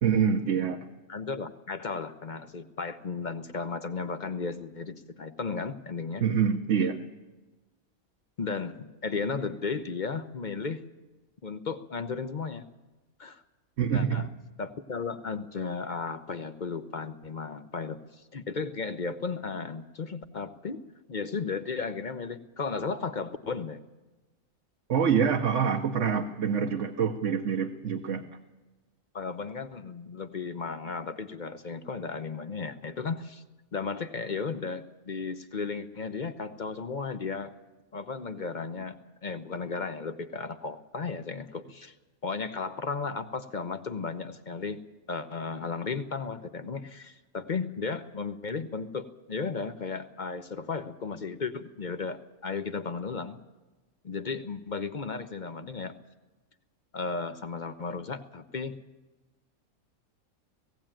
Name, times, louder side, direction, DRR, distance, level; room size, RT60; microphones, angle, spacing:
voice 1, 0.0-0.8 6.2-7.0 13.8-14.3 24.9-28.2, right 7 dB, 60° right, 4 dB, 1.2 m, -26 dB
voice 2, 1.1-6.2 8.4-10.8 11.4-12.6 13.2-13.4 13.9-14.3 14.6-20.8 21.1-23.8 29.1-33.4 33.7-37.5 37.9-38.9 39.2-41.9 42.2-44.8 45.1-53.4 54.0-56.0 56.9-58.8, left 4 dB, 40° left, 10 dB, 0.7 m, -35 dB
18.0 x 16.5 x 8.9 m, 1.2 s
omnidirectional pair, 1.5 m